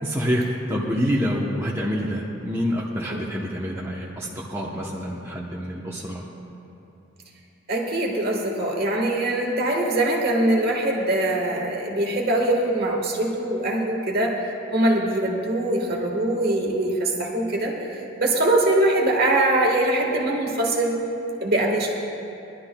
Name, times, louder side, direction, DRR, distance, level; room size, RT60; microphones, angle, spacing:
voice 1, 0.0-6.2, equal, 10° right, -5 dB, 0.8 m, -27 dB
voice 2, 7.7-14.3 14.7-17.7 18.2-21.0 21.4-21.9, right 1 dB, 45° right, -1 dB, 1.5 m, -22 dB
22.0 x 11.5 x 2.3 m, 2.8 s
head